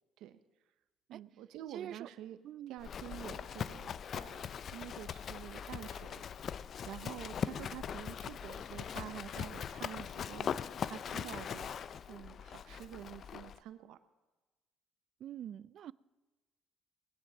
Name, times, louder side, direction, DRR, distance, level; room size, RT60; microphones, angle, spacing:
voice 1, 1.1-2.4 2.7-11.7 12.1-14.0, right 12 dB, 85° right, 0.8 m, -48 dB
voice 2, 1.7-2.1 2.4-2.7 15.2-15.9, right 10 dB, 60° right, 0.4 m, -44 dB
Livestock farm animals working animals, 2.8-13.6, left 8 dB, 50° left, 0.4 m, -41 dB
20.0 x 10.5 x 6.0 m
cardioid pair, 125°, 0 cm